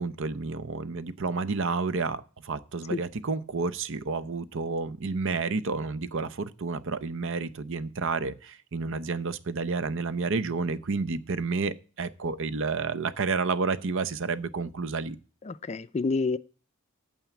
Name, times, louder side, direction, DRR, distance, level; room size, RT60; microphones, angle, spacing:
voice 1, 0.0-15.2, right 4 dB, 65° right, 0.7 m, -30 dB
voice 2, 15.5-16.4, left 3 dB, 30° left, 0.4 m, -28 dB
9.2 x 7.0 x 7.1 m
head